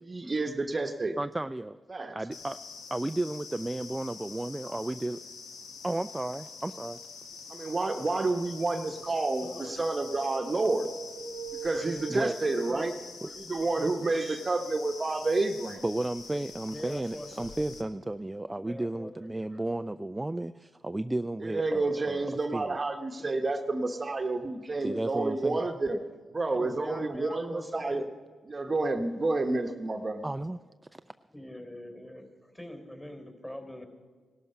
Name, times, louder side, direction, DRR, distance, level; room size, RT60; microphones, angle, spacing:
voice 1, 0.0-1.2 1.9-2.2 7.5-10.9 11.6-12.9 13.4-15.8 21.4-26.0 26.3-28.0 28.5-30.3, right 2 dB, 35° right, 5 dB, 1.0 m, -29 dB
voice 2, 1.2-1.8 2.1-2.6 2.9-5.2 5.8-7.0 11.5-11.6 12.1-12.4 13.2-13.4 15.8-22.8 24.8-25.6 30.2-30.6 30.9-31.0, right 1 dB, 15° right, 11 dB, 0.4 m, -33 dB
sound 1, 2.3-17.8, left 5 dB, 80° left, 1.2 m, -46 dB
voice 3, 9.1-9.7 11.8-12.2 12.5-12.9 13.7-14.1 16.7-17.6 18.6-19.6 23.2-23.5 26.5-28.1 31.3-33.8, left 1 dB, 15° left, 5 dB, 3.9 m, -43 dB
sound 2, 9.2-12.8, right 5 dB, 65° right, 0.9 m, -42 dB
17.5 x 12.5 x 5.5 m, 1.5 s
supercardioid pair, 50°, 0 cm